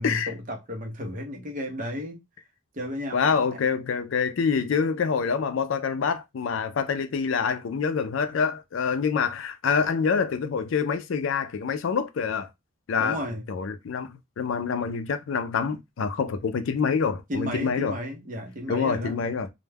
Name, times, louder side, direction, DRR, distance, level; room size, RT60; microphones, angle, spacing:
voice 1, 0.0-2.2 2.7-3.6 13.0-13.5 17.3-19.2, left 1 dB, 40° right, 0.6 m, -33 dB
voice 2, 3.1-12.5 12.9-13.2 13.5-14.1 14.4-17.9 18.7-19.5, left 6 dB, 65° left, 0.4 m, -26 dB
2.2 x 2.1 x 3.3 m
head